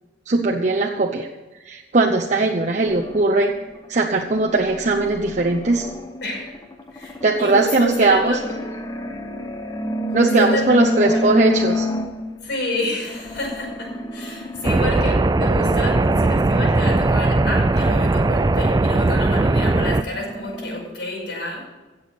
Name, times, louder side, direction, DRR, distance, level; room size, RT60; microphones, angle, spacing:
voice 1, 0.3-1.3 1.6-3.5 3.9-5.9 7.2-8.4 10.1-11.9, right 3 dB, 40° right, 0 dB, 0.8 m, -19 dB
sound 1, 2.9-12.6 13.1-20.9, left 1 dB, 20° left, 0.9 m, -30 dB
voice 2, 6.2-6.5 6.9-8.5 10.1-11.4 12.4-21.6, left 1 dB, 65° left, -2 dB, 5.5 m, -29 dB
sound 2, 14.6-20.0, right 2 dB, 20° right, 0.4 m, -18 dB
17.0 x 7.1 x 6.8 m, 1.2 s
head